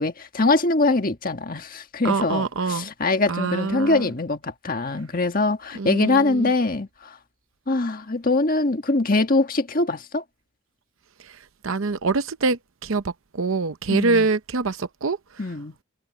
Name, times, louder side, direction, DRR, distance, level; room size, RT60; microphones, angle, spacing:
voice 1, 0.0-7.2 7.7-10.2 13.9-14.3 15.4-15.7, left 2 dB, 40° left, 1.6 m, -23 dB
voice 2, 2.0-2.9 3.3-4.1 5.8-6.5 11.2-15.2, right 3 dB, 70° right, 0.7 m, -25 dB
head